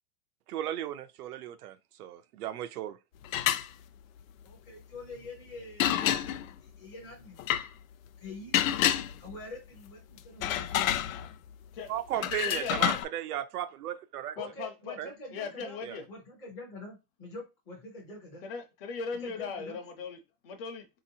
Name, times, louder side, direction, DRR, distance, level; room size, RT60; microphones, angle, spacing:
voice 1, 0.5-3.0 11.9-14.4 15.0-15.1 15.8-16.0, right 11 dB, 80° right, 0.6 m, -35 dB
sound 1, 3.2-3.7 5.8-6.5 7.4-7.7 8.5-9.4 10.2-11.5 12.2-13.1, left 11 dB, 65° left, 0.5 m, -28 dB
voice 2, 4.4-6.2 6.6-7.4 8.2-8.6 9.2-10.9 14.4-15.8 16.1-18.4 19.2-19.8, left 2 dB, 10° left, 0.5 m, -45 dB
voice 3, 11.7-12.9 14.4-15.0 15.3-16.0 18.4-20.9, left 5 dB, 40° left, 0.9 m, -39 dB
4.1 x 2.9 x 2.7 m
supercardioid pair, 175°, 44 cm